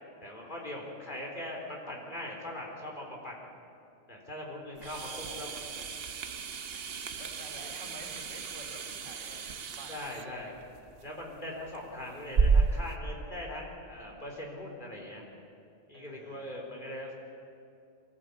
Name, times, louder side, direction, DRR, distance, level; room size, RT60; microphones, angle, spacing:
voice 1, 0.2-3.4 4.1-5.1 5.3-5.5 9.9-10.5 11.0-15.2 15.9-17.1, left 1 dB, 40° left, -1 dB, 4.3 m, -41 dB
sound 1, 4.8-13.0, right 5 dB, 55° right, 1.1 m, -33 dB
voice 2, 5.1-5.6 6.7-10.7 15.9-16.6, right 1 dB, 85° right, 0 dB, 3.9 m, -50 dB
22.5 x 18.5 x 8.5 m, 2.6 s
omnidirectional pair, 1.2 m